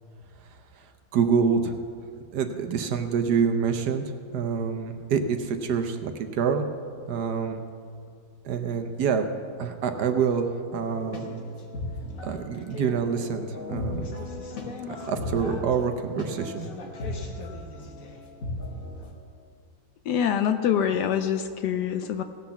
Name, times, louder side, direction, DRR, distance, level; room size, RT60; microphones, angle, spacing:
voice 1, 1.1-1.7 2.3-4.0 4.3-6.7 7.1-7.6 8.4-9.3 9.6-11.4 12.2-14.1 14.9-16.7, right 6 dB, 65° right, 7 dB, 1.2 m, -26 dB
sound 1, 10.8-19.1, left 2 dB, 50° left, 1.5 m, -36 dB
voice 2, 20.1-22.2, left 8 dB, 70° left, 9 dB, 1.0 m, -25 dB
17.5 x 5.9 x 7.0 m, 2.3 s
omnidirectional pair, 2.1 m